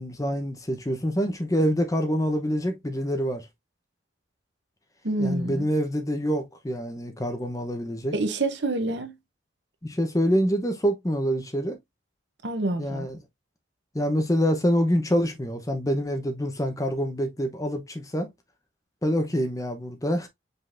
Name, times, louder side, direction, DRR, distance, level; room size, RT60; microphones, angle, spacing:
voice 1, 0.0-3.4 5.2-8.1 9.8-11.8 12.8-13.2 13.9-18.3 19.0-20.3, equal, 15° left, 0.8 m, -26 dB
voice 2, 5.0-5.7 8.1-9.1 12.4-13.1, right 2 dB, 65° right, 0.9 m, -27 dB
5.3 x 3.8 x 2.5 m
head